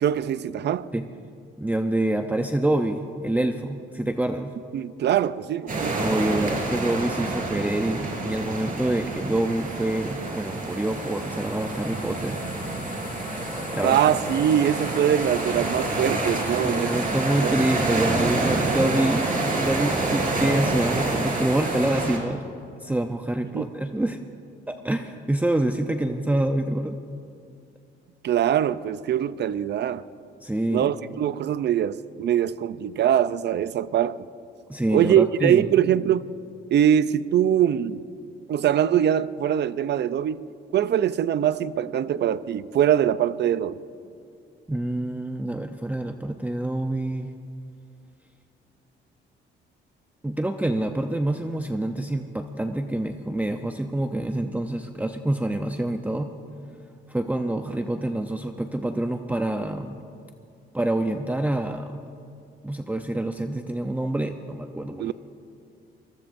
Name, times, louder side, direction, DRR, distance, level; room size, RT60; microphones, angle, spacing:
voice 1, 0.0-0.9 4.7-6.0 13.8-17.0 17.4-17.6 23.5-23.7 28.2-30.0 30.7-34.2 34.9-36.3 36.7-38.0 38.5-40.4 40.7-43.8 65.0-65.1, right 10 dB, 60° right, 0.6 m, -23 dB
voice 2, 1.6-4.5 5.9-12.4 13.7-14.0 16.6-19.3 19.6-22.4 22.8-24.2 24.7-27.0 30.4-30.9 34.7-35.7 44.7-47.3 50.2-56.3 57.1-60.0 60.7-61.9 62.6-65.1, right 1 dB, 10° right, 0.7 m, -26 dB
sound 1, 5.7-22.2, right 2 dB, 40° right, 4.3 m, -28 dB
sound 2, 8.2-21.9, left 3 dB, 65° left, 4.8 m, -41 dB
25.0 x 20.0 x 2.7 m
cardioid pair, 90°, 20 cm